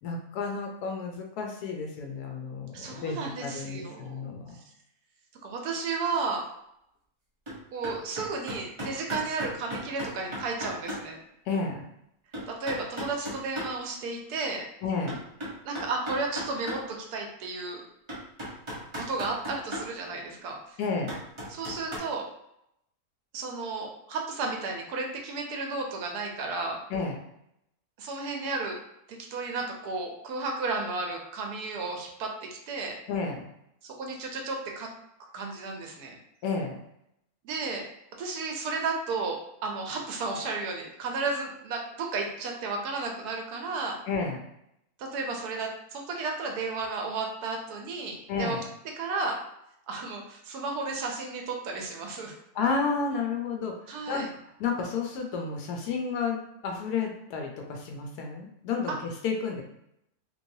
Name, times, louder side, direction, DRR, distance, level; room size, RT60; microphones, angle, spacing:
voice 1, 0.0-4.6 11.5-11.9 14.8-15.2 20.8-21.2 26.9-27.2 33.1-33.4 36.4-36.8 44.1-44.4 48.3-48.7 52.5-54.2 54.6-59.6, left 4 dB, 85° left, 2 dB, 1.1 m, -31 dB
voice 2, 2.7-4.2 5.4-6.4 7.7-11.2 12.5-14.6 15.6-17.8 18.9-20.6 21.5-22.2 23.3-26.8 28.0-28.8 29.3-32.9 33.8-34.9 35.3-36.2 37.4-37.8 38.2-44.0 45.0-48.6 49.0-49.4 49.9-52.3 53.9-54.3 58.9-59.0, right 3 dB, 90° right, 1 dB, 1.2 m, -33 dB
sound 1, 7.5-7.6 7.8-11.0 11.5-11.6 12.3-13.7 15.1-16.8 17.4-17.5 18.1-19.8 21.1-22.0, equal, 25° right, 0.7 m, -35 dB
3.1 x 3.0 x 2.7 m, 0.77 s
omnidirectional pair, 1.6 m